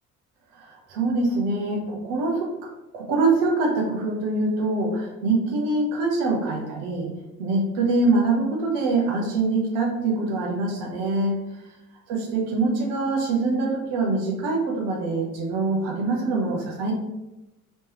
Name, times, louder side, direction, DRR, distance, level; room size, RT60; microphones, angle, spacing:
voice 1, 0.5-7.1 7.4-11.4 12.1-16.9, right 3 dB, 70° right, 0 dB, 1.1 m, -24 dB
3.3 x 3.1 x 2.9 m, 0.98 s
hypercardioid pair, 50°, 43 cm